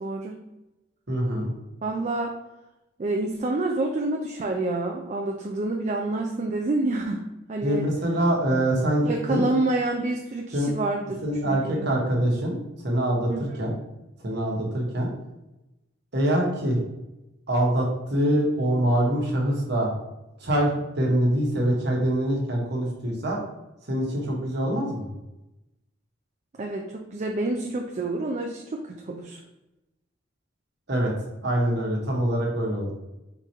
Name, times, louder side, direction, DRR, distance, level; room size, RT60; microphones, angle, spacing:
voice 1, 0.0-0.4 1.8-2.3 3.0-7.2 7.5-7.9 9.0-12.0 13.3-13.6 26.6-29.4, right 2 dB, 35° right, 2 dB, 0.4 m, -28 dB
voice 2, 1.1-1.5 7.6-9.5 10.5-10.7 11.2-12.6 12.8-13.7 14.2-15.1 16.1-16.8 17.5-19.9 20.4-23.4 23.9-25.1 30.9-31.1 31.4-32.9, right 1 dB, 60° right, -1 dB, 1.1 m, -24 dB
3.8 x 2.9 x 4.5 m, 0.97 s
head